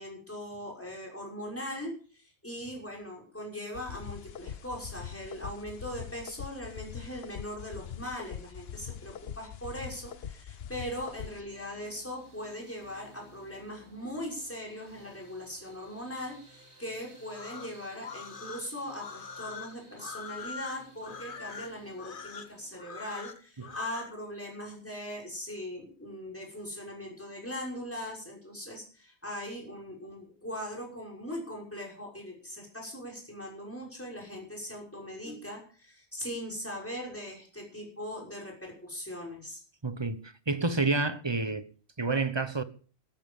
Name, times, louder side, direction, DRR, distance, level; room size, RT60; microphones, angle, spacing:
voice 1, 0.0-39.6, equal, 10° left, 6.2 m, -40 dB
sound 1, 3.7-11.4, left 8 dB, 70° left, 1.1 m, -43 dB
sound 2, 10.8-22.8, right 1 dB, 60° right, 3.6 m, -57 dB
sound 3, 17.2-24.1, left 5 dB, 50° left, 1.3 m, -43 dB
voice 2, 39.8-41.7 42.0-42.6, right 3 dB, 25° right, 1.2 m, -29 dB
14.5 x 13.5 x 5.6 m
omnidirectional pair, 1.1 m